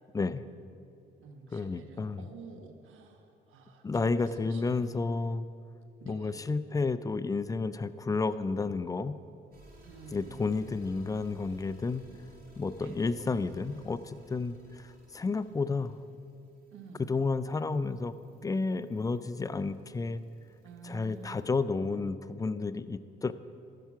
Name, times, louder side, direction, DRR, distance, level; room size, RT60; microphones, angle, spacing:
voice 1, 0.1-0.5 1.5-2.2 3.8-5.4 6.1-9.2 10.1-12.1 12.6-16.0 17.1-18.1 18.4-20.2 20.8-23.3, left 4 dB, 20° left, 13 dB, 0.4 m, -31 dB
voice 2, 1.2-4.9 6.0-6.4 9.8-10.6 12.8-13.3 16.7-17.1 20.6-21.5, right 4 dB, 85° right, 4 dB, 1.1 m, -50 dB
sound 1, 9.5-21.6, right 1 dB, 50° right, 2.9 m, -59 dB
14.0 x 5.8 x 5.9 m, 2.5 s
cardioid pair, 90°, 20 cm